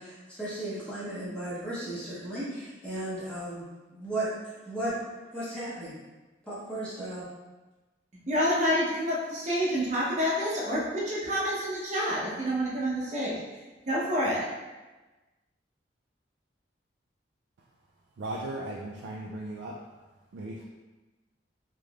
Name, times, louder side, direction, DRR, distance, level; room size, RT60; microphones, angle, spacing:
voice 1, 0.0-3.6 3.9-4.3 4.7-5.0 5.3-5.9 6.5-7.3, right 1 dB, 5° left, -11 dB, 0.8 m, -35 dB
voice 2, 8.3-13.3 13.8-14.4, equal, 40° right, -5 dB, 0.8 m, -28 dB
voice 3, 18.2-19.7 20.3-20.6, right 1 dB, 80° right, -3 dB, 0.4 m, -37 dB
3.5 x 3.1 x 2.3 m, 1.2 s
head